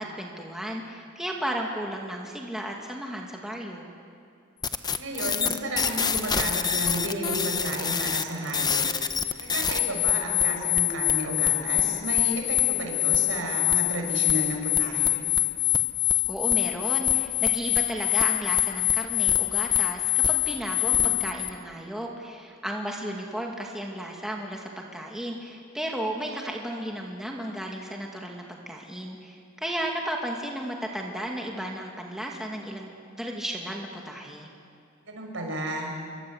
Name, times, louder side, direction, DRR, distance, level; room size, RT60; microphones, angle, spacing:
voice 1, 0.0-3.9 16.3-32.9 33.2-34.5, right 1 dB, ahead, -1 dB, 2.4 m, -34 dB
sound 1, 4.6-21.5, left 11 dB, 20° left, 0.9 m, -25 dB
voice 2, 5.0-8.8 9.4-15.3 20.9-21.1 35.1-35.9, right 1 dB, 70° right, 2 dB, 6.3 m, -32 dB
28.0 x 24.0 x 8.1 m, 2.5 s
head